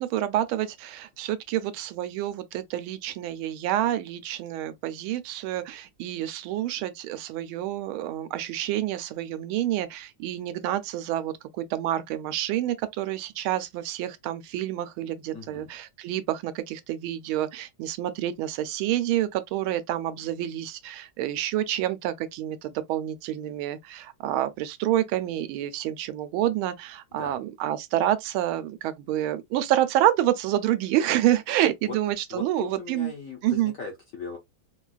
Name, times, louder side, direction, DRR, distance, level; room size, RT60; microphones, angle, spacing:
voice 1, 0.0-33.1 33.4-33.7, right 13 dB, 85° right, 1.4 m, -28 dB
voice 2, 15.3-15.7 27.2-27.4 31.9-32.0 32.3-34.4, left 5 dB, 60° left, 0.8 m, -38 dB
4.4 x 2.3 x 2.3 m
omnidirectional pair, 2.2 m